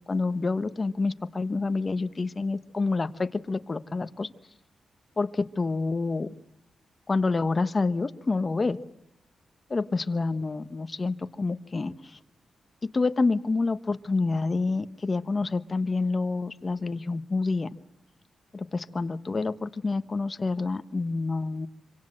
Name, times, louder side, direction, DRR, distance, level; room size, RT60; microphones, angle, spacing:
voice 1, 0.1-4.3 5.2-6.3 7.1-8.8 9.7-12.2 12.9-17.7 18.5-21.7, left 3 dB, 25° left, 11 dB, 1.1 m, -28 dB
26.0 x 26.0 x 7.7 m, 0.86 s
wide cardioid pair, 140°, 0 cm